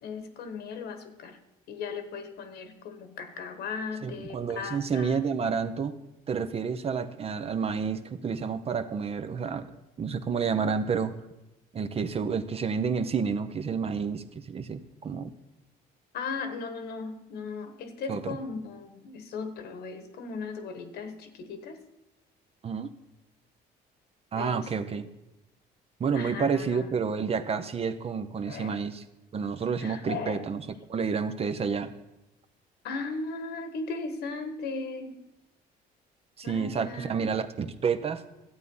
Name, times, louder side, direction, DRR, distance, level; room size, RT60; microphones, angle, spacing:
voice 1, 0.0-1.4 1.7-5.2 16.1-21.8 24.3-25.0 26.1-26.9 28.5-28.8 29.8-30.4 32.8-35.2 36.4-37.3, left 4 dB, 70° left, 8 dB, 1.5 m, -37 dB
voice 2, 4.0-5.9 6.3-9.7 10.0-11.2 11.7-15.3 18.1-18.4 22.6-22.9 24.3-25.1 26.0-29.0 29.3-30.6 30.9-31.9 36.4-38.2, right 6 dB, 35° right, 10 dB, 0.8 m, -29 dB
12.5 x 8.2 x 5.5 m, 0.95 s
cardioid pair, 110°, 17 cm